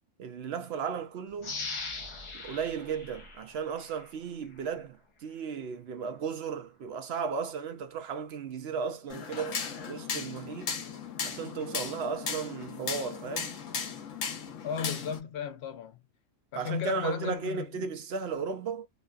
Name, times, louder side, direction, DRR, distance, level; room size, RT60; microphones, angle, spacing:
voice 1, 0.2-1.6 2.3-9.6 9.9-10.8 11.2-13.6 16.6-18.9, right 5 dB, 65° right, 0.7 m, -35 dB
sound 1, 1.4-4.1 4.6-4.7, left 3 dB, 35° left, 0.5 m, -40 dB
sound 2, 9.1-15.2, left 6 dB, 80° left, 1.2 m, -36 dB
voice 2, 14.6-16.0 16.5-17.9, left 7 dB, 60° left, 0.9 m, -35 dB
3.0 x 2.2 x 2.3 m
omnidirectional pair, 1.3 m